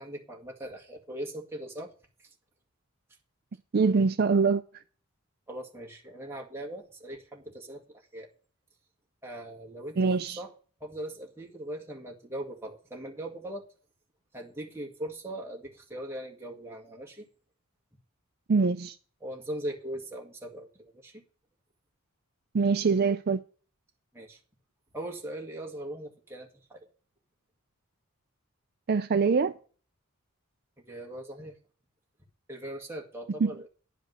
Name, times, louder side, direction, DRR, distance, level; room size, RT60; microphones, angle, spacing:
voice 1, 0.0-1.9 2.2-2.3 5.5-8.3 9.2-10.5 10.8-13.7 14.3-17.3 19.2-21.2 24.1-24.4 24.9-26.9 30.9-31.6 32.5-33.7, right 1 dB, 10° right, 1.9 m, -40 dB
voice 2, 3.7-4.6 10.0-10.4 18.5-19.0 22.5-23.4 28.9-29.6 33.4-33.7, right 4 dB, 45° right, 0.4 m, -24 dB
11.0 x 5.1 x 8.0 m
head